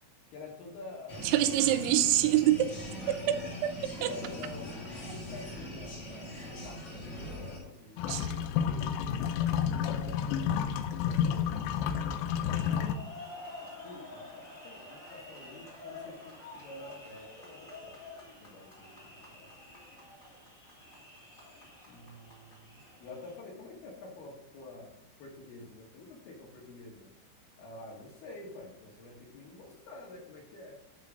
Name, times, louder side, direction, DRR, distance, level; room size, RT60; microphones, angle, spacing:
voice 1, 0.3-1.3 3.0-3.6 4.0-6.0 6.6-12.1 12.5-12.8 13.6-18.0 18.4-19.0 19.3-19.5 21.9-27.1 27.6-30.8, left 2 dB, 65° left, -2 dB, 3.0 m, -48 dB
sound 1, 1.1-7.6, left 1 dB, 45° left, 2.2 m, -41 dB
voice 2, 1.2-2.8 3.1-3.7 4.0-4.1 8.1-8.3, right 12 dB, 85° right, 9 dB, 3.0 m, -26 dB
sound 2, 8.0-13.0, left 8 dB, 85° left, 2.5 m, -30 dB
sound 3, 12.3-23.4, left 2 dB, 20° left, 2.0 m, -49 dB
9.5 x 3.8 x 5.2 m, 0.78 s
omnidirectional pair, 5.4 m